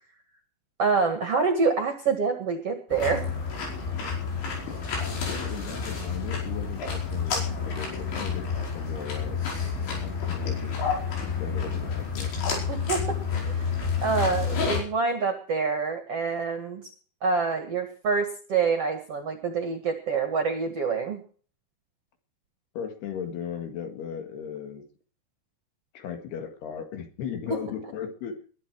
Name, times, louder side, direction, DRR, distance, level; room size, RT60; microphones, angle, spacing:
voice 1, 0.8-3.2 12.7-13.2 13.4-13.7 14.0-16.8 17.2-21.2 27.5-27.6, right 4 dB, 50° right, 5 dB, 2.0 m, -26 dB
sound 1, 2.9-14.8, left 5 dB, 90° left, 7.2 m, -29 dB
voice 2, 5.0-8.5 8.8-9.4 10.0-10.7 11.4-12.4 22.8-24.9 25.9-28.4, left 7 dB, 70° left, 5 dB, 3.7 m, -37 dB
21.0 x 11.0 x 4.7 m, 0.43 s
omnidirectional pair, 5.1 m